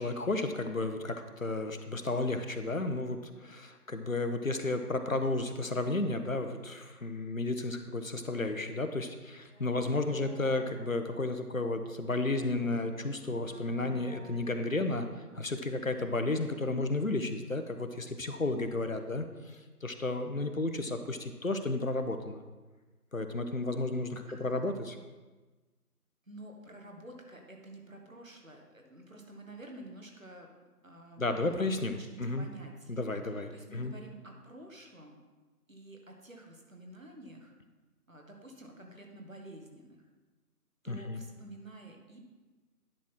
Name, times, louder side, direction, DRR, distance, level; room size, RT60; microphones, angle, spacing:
voice 1, 0.0-15.1 15.4-22.4 23.1-25.0 31.2-32.5 32.9-33.9 40.9-41.2, left 2 dB, 60° left, 7 dB, 0.7 m, -33 dB
Brass instrument, 9.5-16.3 16.6-16.7, right 1 dB, 40° left, 1.2 m, -53 dB
voice 2, 24.3-24.7 26.3-30.5 30.8-31.5 32.0-35.2 35.7-37.6 38.1-40.0 40.8-42.2, right 1 dB, 55° right, 2 dB, 1.4 m, -50 dB
10.0 x 3.7 x 5.9 m, 1.3 s
figure-of-eight pair, 180°, 47 cm